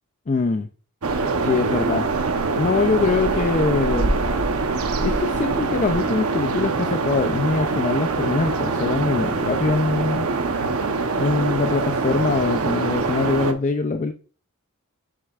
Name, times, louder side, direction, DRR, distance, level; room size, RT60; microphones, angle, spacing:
voice 1, 0.3-0.7 1.4-2.1 2.6-4.2 5.0-10.3 11.2-14.1, left 3 dB, 35° left, 0.4 m, -23 dB
sound 1, 1.0-13.5, right 3 dB, 80° right, 0.9 m, -24 dB
7.6 x 6.5 x 2.4 m
head